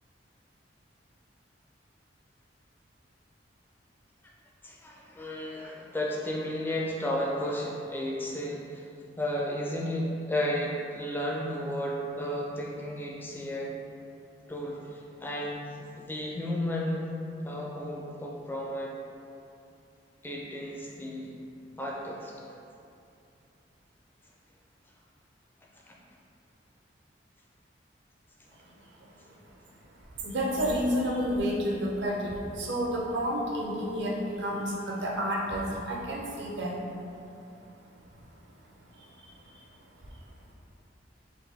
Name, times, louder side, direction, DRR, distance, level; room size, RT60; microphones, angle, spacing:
voice 1, 4.6-8.8 9.2-13.8 14.5-17.1 17.4-19.0 20.2-21.3 21.8-22.3 25.9-26.0, left 1 dB, 10° left, -3 dB, 0.4 m, -33 dB
voice 2, 29.0-29.3 30.2-36.8 38.9-39.6, equal, 70° right, -2 dB, 0.6 m, -31 dB
3.9 x 2.6 x 3.4 m, 2.6 s
head